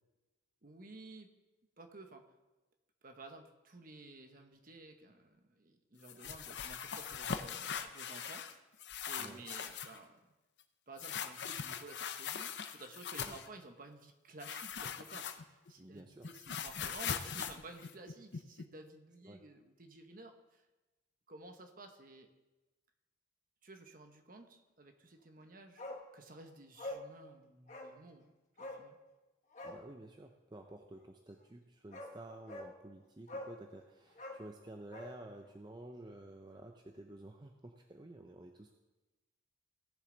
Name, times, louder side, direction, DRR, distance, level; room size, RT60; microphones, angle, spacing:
voice 1, 0.6-1.3 1.8-2.3 3.0-8.5 9.1-10.2 10.9-20.7 21.3-22.3 23.6-25.8 26.1-29.0, right 2 dB, 45° right, 5 dB, 1.1 m, -53 dB
sound 1, 6.0-8.5 8.8-10.0 11.0-13.5 14.4-15.7 16.0-18.6, left 7 dB, 65° left, 0.7 m, -41 dB
voice 2, 15.8-16.3 19.2-19.4 29.6-38.7, right 1 dB, 20° right, 4 dB, 0.6 m, -52 dB
Bark, 25.8-26.0 26.3-26.4 26.8-27.1 27.7-27.9 28.6-28.8 29.5-29.8 31.4-31.5 31.9-32.1 32.5-32.7 33.3-33.6 34.1-35.2 35.4-35.5, left 1 dB, 40° left, 1.3 m, -45 dB
17.5 x 6.8 x 4.0 m, 1.1 s
head